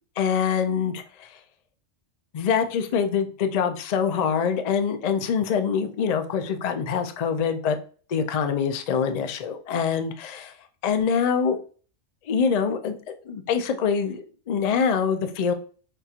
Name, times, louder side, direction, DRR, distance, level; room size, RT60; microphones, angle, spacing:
voice 1, 0.2-1.4 2.3-7.8 8.1-10.5 10.8-11.6 12.3-13.0 13.3-15.5, left 6 dB, 90° left, 8 dB, 0.3 m, -24 dB
5.5 x 2.8 x 2.4 m, 0.41 s
omnidirectional pair, 1.3 m